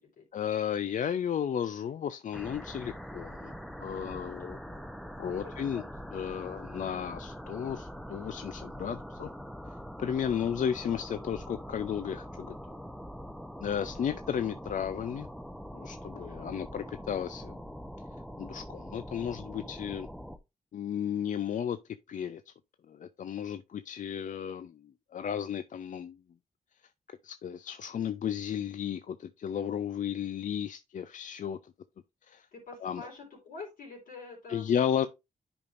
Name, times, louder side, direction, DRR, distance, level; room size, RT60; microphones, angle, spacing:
voice 1, 0.3-3.5 3.8-4.6 5.2-5.8 6.1-9.3 10.0-12.8 13.6-15.3 15.7-17.6 18.4-20.1 20.7-21.8 22.1-22.5 22.9-26.2 27.2-31.6 32.3-32.5 32.8-33.1 34.5-35.1, left 8 dB, 65° left, 0.4 m, -34 dB
sound 1, 2.3-20.4, equal, ahead, 0.7 m, -43 dB
voice 2, 4.3-5.9 16.1-16.6 30.0-30.2 32.5-34.6 35.0-35.1, left 3 dB, 85° left, 4.0 m, -48 dB
9.7 x 5.3 x 2.5 m
cardioid pair, 70°, 14 cm